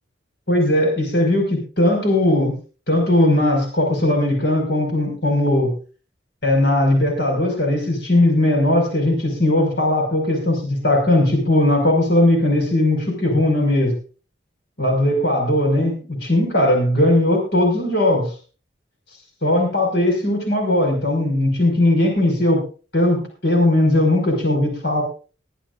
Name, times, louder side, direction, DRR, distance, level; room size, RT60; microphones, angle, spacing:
voice 1, 0.5-2.5 2.9-5.7 6.4-13.9 14.8-18.3 19.4-22.6 22.9-25.0, left 1 dB, 60° left, 3 dB, 5.4 m, -18 dB
23.5 x 11.0 x 2.5 m, 0.36 s
head